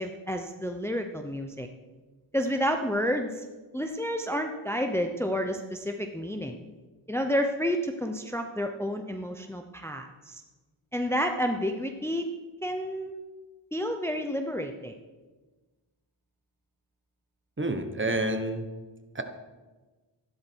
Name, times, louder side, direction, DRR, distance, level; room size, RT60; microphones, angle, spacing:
voice 1, 0.0-1.7 2.3-3.4 3.7-6.6 7.1-10.4 10.9-12.3 12.6-13.1 13.7-15.0, equal, 5° left, 5 dB, 0.8 m, -30 dB
voice 2, 17.6-18.7 19.1-19.2, right 1 dB, 25° right, 6 dB, 1.3 m, -28 dB
14.0 x 12.0 x 4.6 m, 1.3 s
wide cardioid pair, 105°, 47 cm